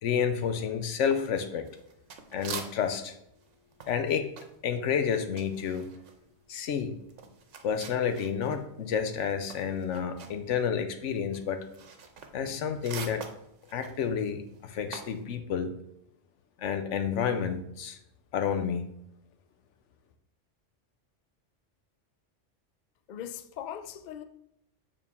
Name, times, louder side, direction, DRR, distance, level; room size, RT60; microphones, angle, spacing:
voice 1, 0.0-1.7 2.3-3.1 3.9-4.3 4.6-5.9 6.5-7.0 7.6-11.7 12.3-13.3 13.7-15.7 16.6-18.0 18.3-18.9, left 7 dB, 80° left, 1.0 m, -30 dB
sound 1, 1.1-3.1 3.4-8.7 9.0-15.2, right 6 dB, 80° right, 1.1 m, -45 dB
voice 2, 23.1-24.2, left 9 dB, 60° left, 0.4 m, -40 dB
7.3 x 4.6 x 3.5 m
omnidirectional pair, 1.2 m